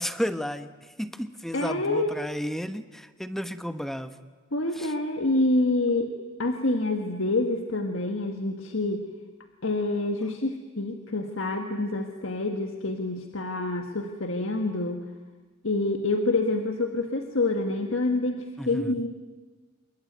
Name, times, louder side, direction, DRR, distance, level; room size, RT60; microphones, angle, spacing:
voice 1, 0.0-4.2 4.7-4.9 18.6-18.9, equal, ahead, 10 dB, 1.0 m, -33 dB
voice 2, 1.5-2.1 4.5-6.1 6.4-9.0 9.6-15.0 15.6-19.1, left 2 dB, 70° left, 5 dB, 1.6 m, -27 dB
26.5 x 23.0 x 9.4 m, 1.4 s
head